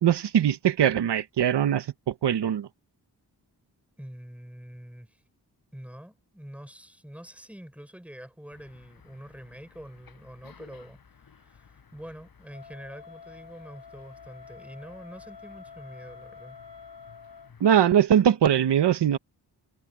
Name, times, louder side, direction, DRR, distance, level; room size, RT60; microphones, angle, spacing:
voice 1, 0.0-2.7 17.6-19.2, right 9 dB, 90° right, 1.1 m, -21 dB
voice 2, 4.0-5.2 5.7-16.6, equal, 5° right, 4.7 m, -45 dB
sound 1, 8.5-17.8, left 6 dB, 60° left, 8.0 m, -56 dB
Wind instrument woodwind instrument, 12.5-17.5, left 6 dB, 75° left, 3.3 m, -48 dB
wide cardioid pair, 120°, 40 cm